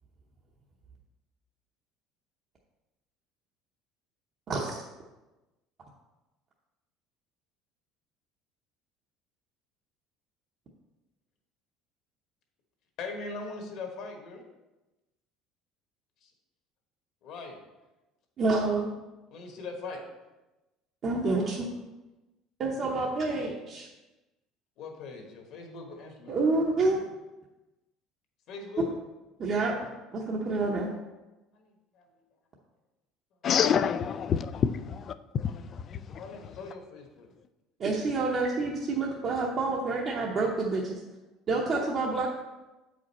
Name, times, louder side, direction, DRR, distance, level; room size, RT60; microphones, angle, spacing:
voice 1, 4.5-4.8 18.4-18.9 21.0-21.7 22.6-23.9 26.3-27.0 29.4-29.7 30.1-30.9 37.8-41.0 41.5-42.3, right 3 dB, 30° right, 0.8 m, -28 dB
voice 2, 13.0-14.4 16.2-16.3 17.2-17.6 19.3-20.0 24.8-26.4 28.5-28.8 31.5-32.2 34.5-34.6 36.2-37.3, left 3 dB, 50° left, 1.3 m, -41 dB
voice 3, 33.4-36.2, left 8 dB, 30° left, 0.3 m, -28 dB
7.8 x 5.1 x 4.2 m
cardioid pair, 170°, 0 cm